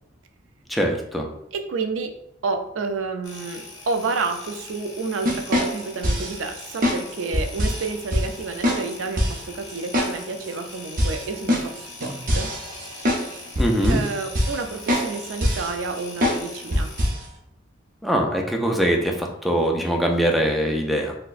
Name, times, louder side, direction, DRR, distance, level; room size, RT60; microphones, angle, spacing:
voice 1, 0.7-1.3 13.6-14.0 18.0-21.2, equal, ahead, 1 dB, 0.4 m, -22 dB
voice 2, 1.5-2.1 2.4-12.5 13.9-16.9, right 4 dB, 90° right, 6 dB, 0.4 m, -30 dB
sound 1, 3.2-17.1, left 3 dB, 60° left, 0.8 m, -42 dB
sound 2, 5.2-6.4 6.8-7.0 7.3-7.8 8.1-8.3 8.6-8.8 9.2-9.4 9.9-10.1 10.4-10.5 11.0-13.3 13.6-14.1 14.3-14.6 14.9-15.1 15.4-15.7 16.2-16.4 16.7-17.2, equal, 45° right, 0.6 m, -23 dB
4.0 x 2.2 x 2.4 m, 0.79 s
head